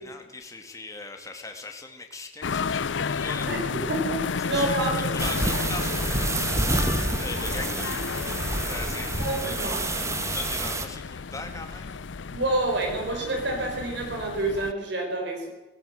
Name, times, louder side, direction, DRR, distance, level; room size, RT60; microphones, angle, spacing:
voice 1, 0.0-3.5 4.4-9.8 10.2-12.0, left 3 dB, 20° left, 3 dB, 2.5 m, -40 dB
sound 1, 2.4-14.7, left 5 dB, 75° left, 0.6 m, -32 dB
voice 2, 4.4-5.1 9.2-9.8 12.3-15.5, right 2 dB, 65° right, 2 dB, 5.2 m, -28 dB
sound 2, 5.2-10.9, right 2 dB, 15° right, 1.7 m, -28 dB
18.5 x 18.0 x 7.9 m, 1.1 s
head